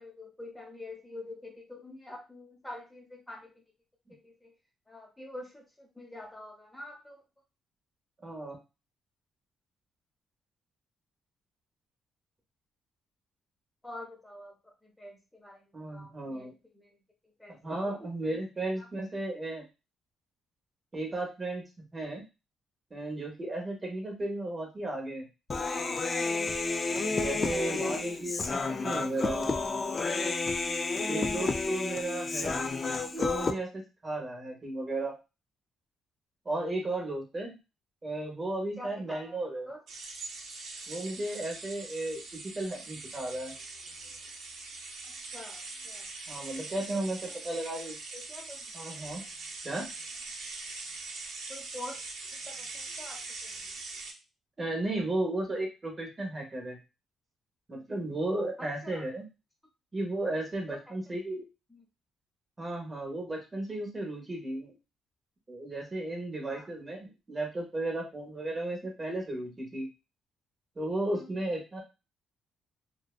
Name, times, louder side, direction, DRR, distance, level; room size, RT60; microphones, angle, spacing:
voice 1, 0.0-3.5 4.1-4.5 4.9-7.2 13.8-16.9 17.4-17.6 17.9-18.4 38.8-39.4 39.7-39.8 45.3-46.1 47.3-47.4 48.1-48.6 51.5-52.0 52.3-53.7 58.6-59.0 60.7-61.0 61.7-61.8 66.5-66.7 71.1-71.3, left 1 dB, 10° left, 0 dB, 0.8 m, -46 dB
voice 2, 8.2-8.6 15.7-16.5 17.6-19.6 20.9-21.6 21.9-22.2 22.9-25.3 27.1-29.5 31.1-32.6 33.1-35.1 36.4-37.6 38.0-39.7 40.9-43.5 46.3-48.0 48.7-49.2 49.6-49.9 54.6-56.8 57.7-59.3 59.9-61.4 62.6-64.7 65.5-69.9 70.8-71.8, right 2 dB, 25° right, 0 dB, 0.8 m, -34 dB
Human voice, 25.5-33.5, left 3 dB, 35° left, 0.3 m, -31 dB
sound 1, 39.9-54.1, right 3 dB, 75° right, 0.7 m, -42 dB
2.6 x 2.2 x 2.3 m, 0.28 s
cardioid pair, 90°, 0 cm